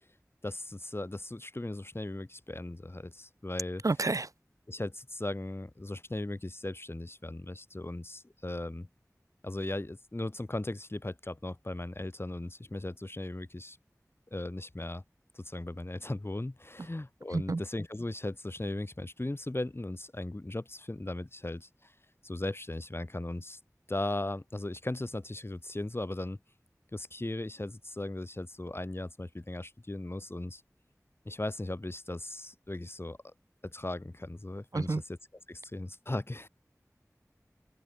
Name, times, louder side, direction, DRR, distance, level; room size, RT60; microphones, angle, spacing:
voice 1, 0.4-4.0 4.7-8.9 9.4-13.8 14.3-15.0 15.3-21.9 22.2-23.6 23.9-26.4 26.9-30.6 31.2-33.3 33.7-35.2 35.5-36.5, left 2 dB, 40° left, 2.7 m, -37 dB
voice 2, 3.8-4.3 17.3-17.6 34.7-35.0, right 3 dB, 70° right, 0.7 m, -29 dB
wide cardioid pair, 45°, 6 cm